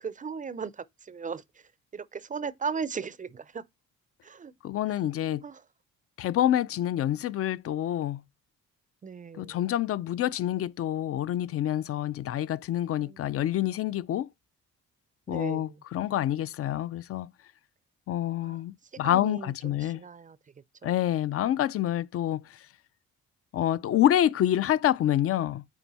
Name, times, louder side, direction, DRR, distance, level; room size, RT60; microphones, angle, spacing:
voice 1, 0.0-3.6 4.2-4.5 4.9-5.0 5.4-5.6 9.0-9.6 13.0-13.4 15.3-15.8 18.4-18.6 18.9-20.4 20.8-20.9, right 6 dB, 25° right, 0.5 m, -37 dB
voice 2, 4.6-5.4 6.2-8.2 9.4-14.3 15.3-17.3 18.1-20.0 20.8-22.6 23.5-25.6, left 12 dB, 50° left, 0.4 m, -27 dB
9.0 x 3.3 x 4.1 m
cardioid pair, 90°, 30 cm